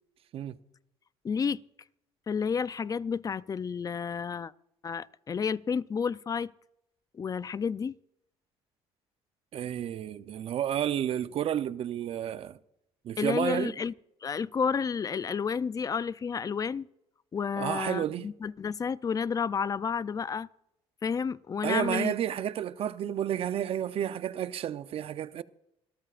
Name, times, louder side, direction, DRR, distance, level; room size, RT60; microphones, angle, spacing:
voice 1, 1.2-1.6 2.3-4.5 4.8-6.5 7.1-7.9 13.2-13.9 14.2-16.9 17.3-20.5 21.0-22.1, left 6 dB, 30° left, 0.5 m, -31 dB
voice 2, 9.5-12.6 13.0-13.7 17.6-18.3 21.6-25.4, right 10 dB, 55° right, 0.7 m, -31 dB
25.5 x 13.5 x 2.5 m
cardioid pair, 90°, 12 cm